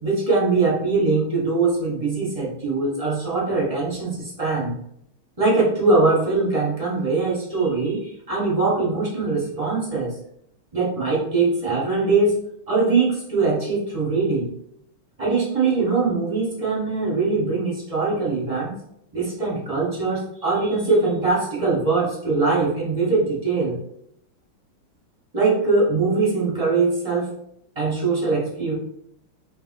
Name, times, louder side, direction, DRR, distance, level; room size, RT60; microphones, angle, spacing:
voice 1, 0.0-4.7 5.4-10.1 10.7-12.4 12.7-14.5 15.2-18.7 19.1-23.8 25.3-27.3 27.8-28.7, right 3 dB, 25° right, -5 dB, 0.8 m, -22 dB
5.8 x 2.9 x 2.5 m, 0.71 s
omnidirectional pair, 2.3 m